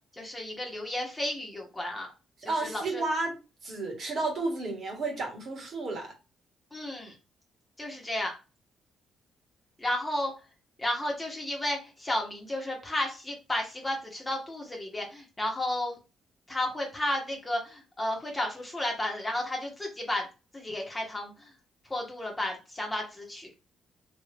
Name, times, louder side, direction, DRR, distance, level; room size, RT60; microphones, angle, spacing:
voice 1, 0.2-2.1 2.6-3.0 6.7-7.1 7.8-8.3 9.8-10.3 10.8-16.0 16.5-20.3 20.5-21.3 21.9-23.5, left 1 dB, 15° left, 1.2 m, -32 dB
voice 2, 2.4-3.4 3.6-6.1, right 3 dB, 55° right, 1.6 m, -32 dB
3.0 x 2.7 x 3.4 m
cardioid pair, 90°, 0 cm